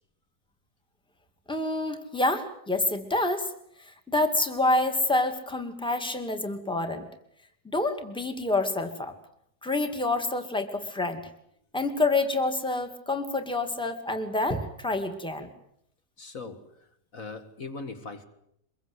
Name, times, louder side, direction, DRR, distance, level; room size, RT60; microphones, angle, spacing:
voice 1, 1.5-3.5 4.1-7.1 7.6-9.1 9.6-11.2 11.7-15.5, left 2 dB, 5° left, 7 dB, 2.2 m, -27 dB
voice 2, 16.2-18.2, left 3 dB, 55° left, 7 dB, 2.2 m, -40 dB
24.0 x 22.5 x 8.0 m, 0.74 s
omnidirectional pair, 1.8 m